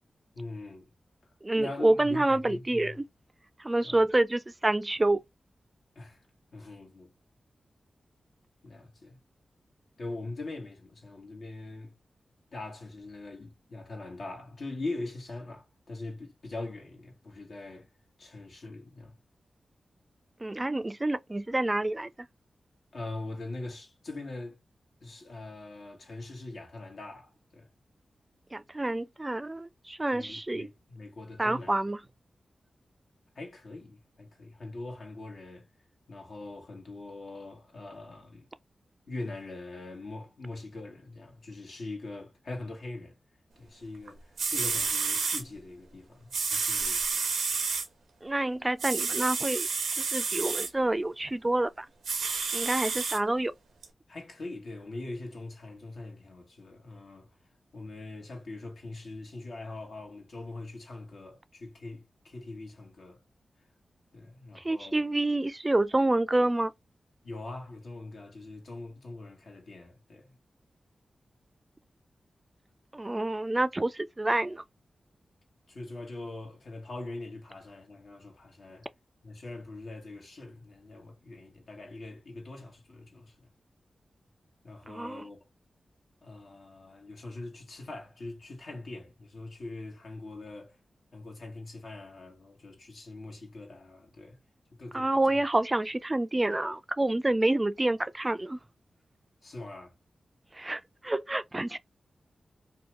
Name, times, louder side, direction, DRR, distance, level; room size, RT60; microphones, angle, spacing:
voice 1, 0.3-0.9 1.6-3.0 3.8-4.0 5.9-6.2 6.5-7.1 8.6-9.2 10.0-12.0 12.5-17.9 18.2-19.1 22.9-24.6 25.0-27.7 30.1-31.8 33.3-35.7 36.1-38.5 39.1-43.2 43.6-47.2 54.1-57.3 57.7-63.2 64.1-65.0 67.2-70.4 75.7-78.9 79.2-83.5 84.6-85.4 86.2-90.8 91.1-94.4 94.7-95.4 99.4-99.9, left 2 dB, 75° left, 1.1 m, -42 dB
voice 2, 1.4-2.9 3.6-5.2 20.4-22.1 28.5-30.7 31.4-32.0 48.2-49.7 50.0-51.9 52.5-53.5 64.6-66.7 72.9-74.6 84.9-85.2 94.9-98.6 100.5-101.8, right 2 dB, 25° right, 0.3 m, -28 dB
sound 1, 44.1-44.2 44.4-45.4 46.3-47.9 48.8-50.7 52.0-53.2 53.8-53.9, right 5 dB, 90° right, 0.6 m, -30 dB
2.8 x 2.2 x 2.9 m
cardioid pair, 45°, 0 cm